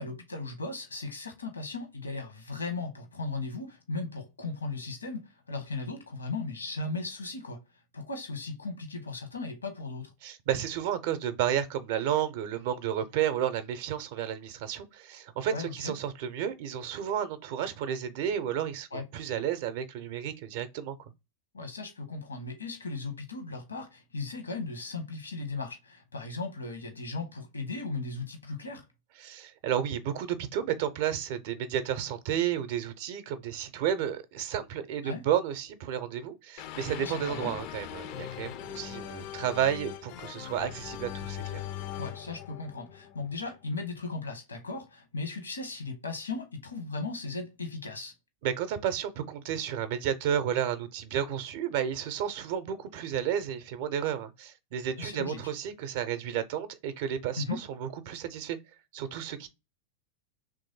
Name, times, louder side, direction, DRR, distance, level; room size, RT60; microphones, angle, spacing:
voice 1, 0.0-7.6 7.9-10.1 15.5-15.9 18.9-19.0 21.5-28.8 35.0-35.2 37.0-37.5 42.0-48.1 55.0-55.5 57.4-57.6, left 3 dB, 75° left, 0.9 m, -37 dB
voice 2, 10.2-21.0 29.2-41.6 48.4-58.6 58.9-59.5, right 9 dB, 50° right, 0.5 m, -32 dB
sound 1, 36.6-43.5, left 11 dB, 45° left, 0.3 m, -40 dB
3.1 x 2.5 x 3.9 m
figure-of-eight pair, 90°, 0 cm